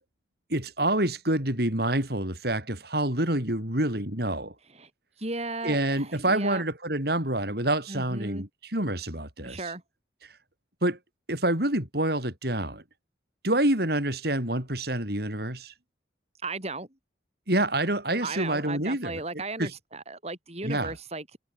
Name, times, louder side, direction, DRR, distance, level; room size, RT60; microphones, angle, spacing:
voice 1, 0.5-4.5 5.6-9.6 10.8-11.0 11.3-12.8 13.4-15.7 17.5-19.2 19.6-19.7 20.6-20.9, right 1 dB, 60° right, 6.8 m, -27 dB
voice 2, 5.2-6.6 7.9-8.4 9.4-9.8 16.4-16.9 18.2-21.2, right 3 dB, 35° right, 5.1 m, -35 dB
head